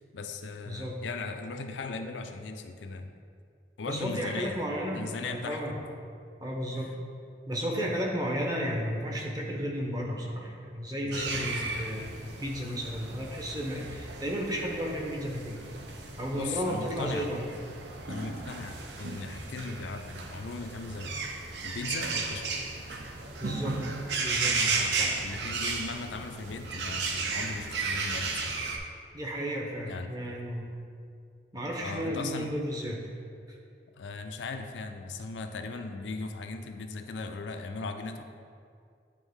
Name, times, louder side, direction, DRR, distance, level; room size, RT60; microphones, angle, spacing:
voice 1, 0.0-3.1 3.8-4.6 4.9-5.8 6.8-6.9 11.0-11.8 16.3-17.3 18.1-21.2 21.6-22.5 24.4-28.6 29.8-30.1 31.8-32.5 34.0-38.2, left 3 dB, 90° left, 6 dB, 0.5 m, -38 dB
voice 2, 0.7-1.0 3.9-5.8 6.4-6.9 7.5-12.0 12.4-15.6 16.2-17.4 23.4-23.8 24.2-24.6 24.9-25.1 29.1-30.7 31.5-33.0 33.5-33.6, equal, 20° right, -1 dB, 0.8 m, -33 dB
sound 1, 11.1-28.8, right 4 dB, 75° right, 0.6 m, -34 dB
9.1 x 3.5 x 3.5 m, 2.3 s
head